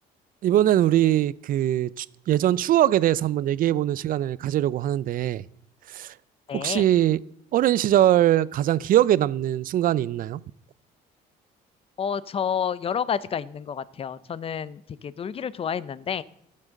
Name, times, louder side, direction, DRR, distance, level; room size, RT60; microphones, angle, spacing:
voice 1, 0.4-5.4 5.9-6.1 6.5-7.2 7.5-10.4, right 12 dB, 55° right, 0.5 m, -22 dB
voice 2, 6.5-6.9 12.0-16.2, left 7 dB, 35° left, 0.6 m, -29 dB
14.5 x 7.5 x 6.4 m
cardioid pair, 110°, 17 cm